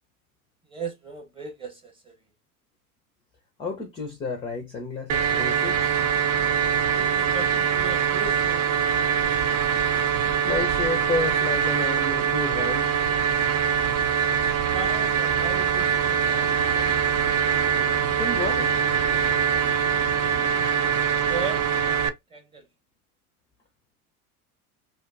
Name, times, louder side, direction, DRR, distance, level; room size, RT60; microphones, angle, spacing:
voice 1, 0.7-2.2 6.9-9.2 14.5-17.1 20.4-22.7, right 4 dB, 10° right, 0.8 m, -38 dB
voice 2, 3.6-5.9 10.4-12.9 18.2-18.7, left 3 dB, 15° left, 0.4 m, -30 dB
sound 1, 5.1-22.1, right 7 dB, 55° right, 0.5 m, -23 dB
sound 2, 13.5-20.7, right 5 dB, 90° right, 1.4 m, -41 dB
2.6 x 2.2 x 2.4 m
figure-of-eight pair, 80°, 45 cm